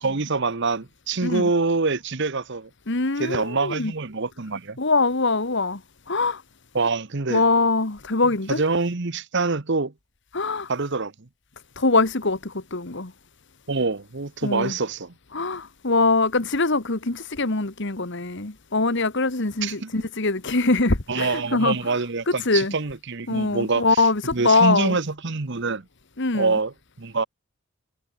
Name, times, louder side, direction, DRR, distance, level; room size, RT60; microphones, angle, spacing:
voice 1, 0.0-2.7 3.2-4.8 6.7-7.4 8.5-9.9 10.7-11.1 13.7-15.1 19.6-19.9 21.1-25.8 26.3-27.2, right 3 dB, 55° right, 1.1 m, -25 dB
voice 2, 2.9-3.9 4.8-5.8 6.1-6.4 7.3-8.6 10.3-10.7 11.8-13.1 14.4-14.7 15.3-21.8 22.3-22.7 23.3-25.0 26.2-26.5, left 3 dB, 55° left, 1.7 m, -23 dB
head